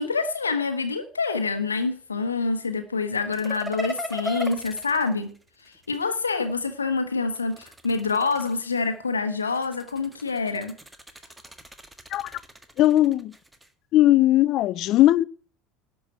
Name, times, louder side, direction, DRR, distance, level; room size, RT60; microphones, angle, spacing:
voice 1, 0.0-5.3 5.6-10.8, left 4 dB, 80° left, 1.2 m, -26 dB
sound 1, 3.3-6.1 7.3-8.9 9.4-13.7, equal, 10° right, 1.6 m, -38 dB
voice 2, 12.8-13.3 13.9-15.2, left 14 dB, 50° left, 0.5 m, -18 dB
12.0 x 6.1 x 9.3 m
figure-of-eight pair, 70°, 0 cm